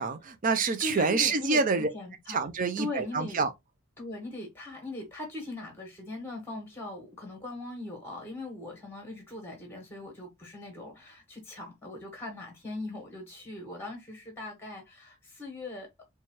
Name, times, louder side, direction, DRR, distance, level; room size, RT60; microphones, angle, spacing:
voice 1, 0.0-1.9 2.3-3.5, right 4 dB, 35° right, 0.5 m, -27 dB
voice 2, 0.8-2.5 2.8-3.4 4.0-16.0, left 2 dB, 10° left, 1.4 m, -40 dB
4.4 x 2.3 x 2.9 m
head